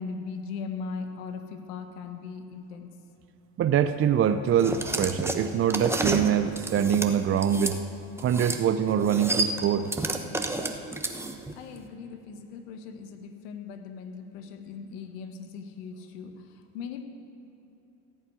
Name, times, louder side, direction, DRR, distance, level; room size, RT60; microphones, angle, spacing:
voice 1, 0.0-2.9 11.6-17.0, left 5 dB, 80° left, 7 dB, 1.3 m, -39 dB
voice 2, 3.6-7.8 8.2-9.9, right 8 dB, 30° right, 9 dB, 0.4 m, -24 dB
sound 1, 4.6-7.8 8.2-8.6 8.9-11.5, right 2 dB, 5° right, 0.9 m, -30 dB
15.5 x 5.6 x 9.3 m, 2.9 s
supercardioid pair, 95°, 47 cm